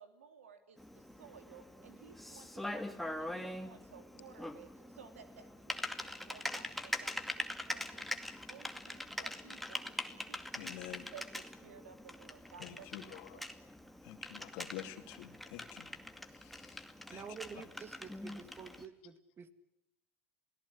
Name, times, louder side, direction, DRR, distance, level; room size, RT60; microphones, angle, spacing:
voice 1, 0.0-8.2 8.5-10.5 11.1-11.2 11.6-13.5, right 7 dB, 85° right, 9 dB, 3.0 m, -57 dB
Typing, 0.8-18.9, left 1 dB, ahead, 2.3 m, -43 dB
voice 2, 10.5-11.1 12.6-13.4 14.0-15.9 16.2-17.3 17.5-17.6, left 13 dB, 65° left, 7 dB, 2.7 m, -48 dB
voice 3, 17.1-19.5, right 6 dB, 35° right, 12 dB, 2.5 m, -49 dB
28.0 x 18.0 x 10.0 m, 0.85 s
hypercardioid pair, 80°, 7 cm